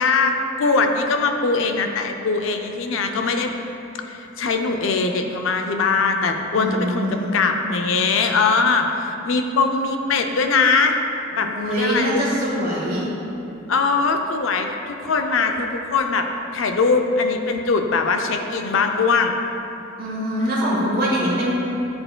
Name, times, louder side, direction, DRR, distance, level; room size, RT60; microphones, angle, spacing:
voice 1, 0.0-3.5 4.1-11.0 11.3-12.3 13.7-16.3 16.5-19.3, left 4 dB, 75° left, 5 dB, 0.4 m, -21 dB
voice 2, 6.6-7.3 11.4-13.0 20.0-21.5, equal, 50° right, -5 dB, 1.4 m, -23 dB
10.0 x 4.3 x 2.2 m, 2.9 s
head